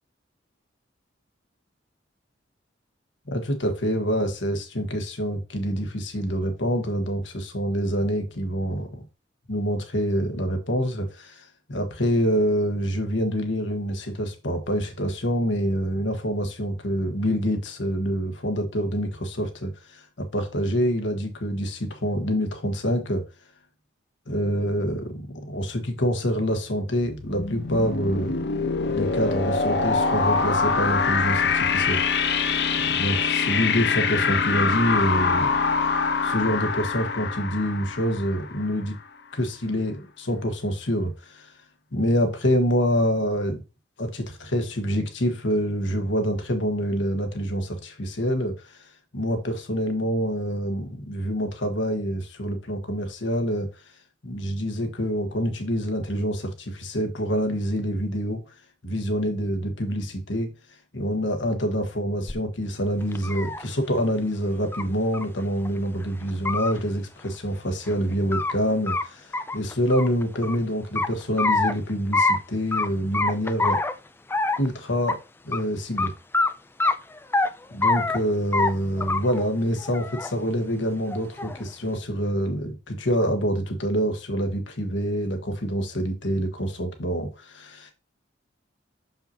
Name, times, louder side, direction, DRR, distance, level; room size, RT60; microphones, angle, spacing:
voice 1, 3.3-9.0 9.5-23.2 24.3-28.4 28.9-32.0 32.9-35.5 35.9-39.0 39.3-41.5 41.9-43.6 44.0-53.7 54.2-58.4 58.8-60.5 60.9-73.8 74.6-75.2 75.4-76.1 77.7-87.9, equal, 80° left, 1.4 m, -26 dB
sound 1, 27.1-38.8, left 5 dB, 60° left, 0.8 m, -24 dB
sound 2, 62.3-62.4 63.0-63.6 64.7-64.8 65.1-65.2 65.6-65.7 66.3-66.7 67.9-68.5 68.9-69.0 69.3-70.6 71.0-71.7 72.1-72.4 72.7-72.9 73.1-73.9 74.3-74.7 75.1-75.2 75.5-75.6 76.0-76.1 76.3-76.5 76.8-77.5 77.8-78.2 78.5-78.7 79.0-79.4 79.8-80.3 81.1-81.6, left 3 dB, 10° left, 0.4 m, -24 dB
6.6 x 5.6 x 2.8 m
head